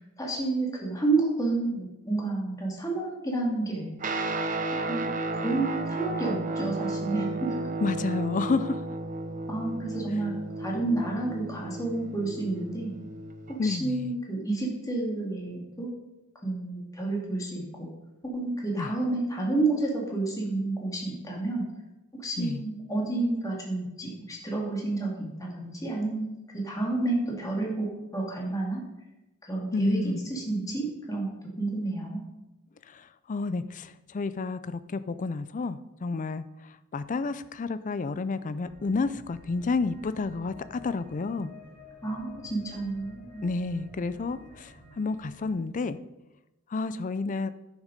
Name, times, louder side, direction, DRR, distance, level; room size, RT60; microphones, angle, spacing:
voice 1, 0.2-4.0 4.9-7.6 9.5-12.9 13.6-15.9 16.4-17.9 18.2-21.7 22.1-27.9 28.1-28.8 29.5-32.3 42.0-43.4, right 2 dB, 15° left, -2 dB, 2.2 m, -30 dB
Guitar, 4.0-13.6, right 2 dB, 35° right, 0.8 m, -33 dB
voice 2, 7.8-8.8 13.6-14.1 18.8-18.9 22.4-22.6 29.7-30.2 32.9-41.5 43.4-46.0 46.7-47.5, left 3 dB, 35° left, 14 dB, 0.4 m, -30 dB
sound 1, 38.6-45.5, left 2 dB, 55° left, 4.1 m, -51 dB
10.5 x 6.4 x 5.2 m, 0.99 s
head